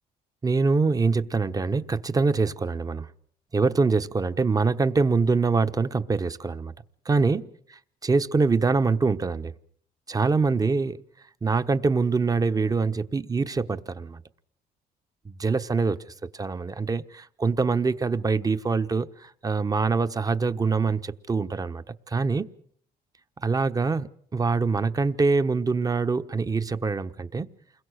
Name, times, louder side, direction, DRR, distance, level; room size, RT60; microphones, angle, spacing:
voice 1, 0.4-3.1 3.5-6.7 7.0-9.5 10.1-11.0 11.4-14.2 15.2-16.0 16.3-22.5 23.4-27.5, right 4 dB, 20° right, 1.2 m, -24 dB
29.0 x 22.0 x 6.5 m
cardioid pair, 110°, 17 cm